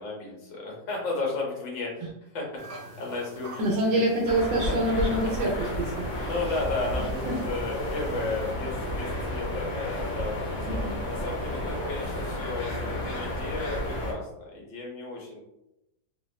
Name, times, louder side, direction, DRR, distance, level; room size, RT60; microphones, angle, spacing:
voice 1, 0.0-2.4 2.7-4.0 6.2-10.7 11.1-15.4, left 3 dB, 90° left, -2 dB, 1.6 m, -34 dB
Teacup Rattle walk, 2.6-8.5, right 1 dB, 60° right, 0.8 m, -46 dB
voice 2, 3.6-6.3 7.3-7.4, right 1 dB, 80° right, -3 dB, 1.2 m, -26 dB
sound 1, 4.3-14.1, left 1 dB, 60° left, 0.9 m, -32 dB
3.5 x 2.2 x 2.3 m, 0.91 s
omnidirectional pair, 1.9 m